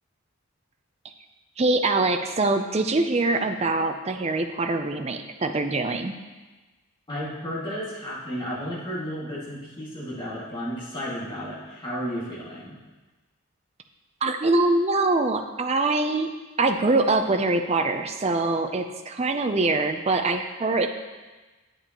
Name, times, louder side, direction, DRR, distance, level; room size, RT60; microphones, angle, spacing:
voice 1, 1.6-6.1 14.2-16.3 16.6-20.9, right 2 dB, 30° right, 6 dB, 0.5 m, -23 dB
voice 2, 7.1-12.8, equal, 20° left, -8 dB, 2.1 m, -33 dB
9.0 x 8.4 x 3.0 m, 1.2 s
head